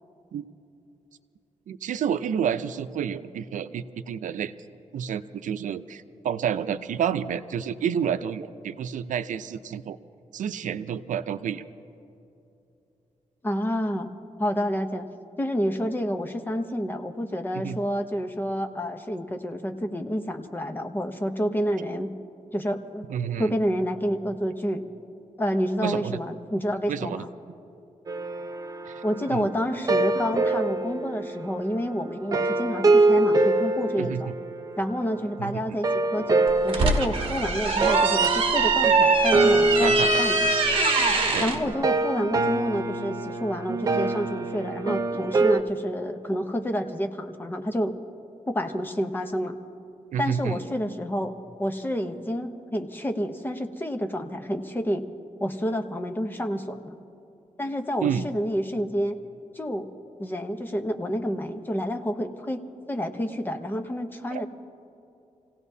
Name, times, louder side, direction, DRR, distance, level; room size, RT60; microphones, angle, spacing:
voice 1, 1.7-4.5 4.9-10.0 10.3-11.6 17.5-17.8 23.1-23.5 25.8-26.2 26.9-27.2 28.9-29.0 29.3-29.5 34.0-34.4 35.4-35.8 39.8-40.2 41.3-41.5 50.1-50.6 58.0-58.3 64.3-64.4, right 8 dB, 90° right, 11 dB, 0.5 m, -29 dB
voice 2, 13.4-14.1 14.4-15.1 15.4-22.1 22.5-23.1 23.4-24.8 25.4-27.3 29.0-34.3 34.8-40.5 41.4-47.9 48.5-49.6 50.2-51.3 51.6-55.0 55.4-57.0 57.6-59.2 59.5-59.9 60.2-64.5, equal, 15° left, 6 dB, 0.8 m, -29 dB
sound 1, 28.1-35.3 35.8-45.6, right 2 dB, 30° right, 0.6 m, -25 dB
sound 2, 36.5-41.6, right 3 dB, 45° right, 1.4 m, -23 dB
27.5 x 17.0 x 2.7 m, 2.8 s
wide cardioid pair, 150°, 13 cm